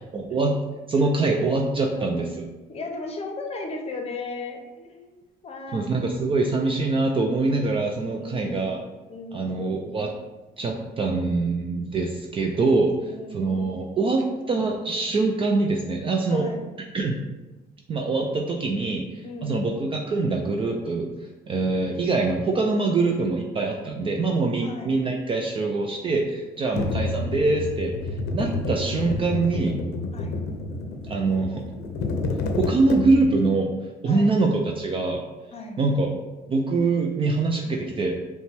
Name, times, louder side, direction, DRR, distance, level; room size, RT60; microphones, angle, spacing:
voice 1, 0.1-0.6 0.9-2.3 5.7-8.8 9.3-10.1 10.6-16.5 16.9-17.2 17.9-21.1 21.5-29.7 31.1-31.6 32.5-33.7 34.0-35.2 35.8-36.1 36.5-38.2, right 3 dB, 30° right, 1 dB, 0.4 m, -24 dB
voice 2, 1.9-2.4 2.7-5.9 8.2-8.6 9.1-9.6 13.1-13.6 16.3-16.6 19.2-19.6 24.6-24.9 26.7-26.9 30.1-30.4 34.1-34.4 35.5-35.8, left 3 dB, 35° left, 3 dB, 0.7 m, -36 dB
sound 1, 26.8-33.5, left 3 dB, 80° left, 0.6 m, -29 dB
5.4 x 2.2 x 3.3 m, 1.1 s
cardioid pair, 110°, 17 cm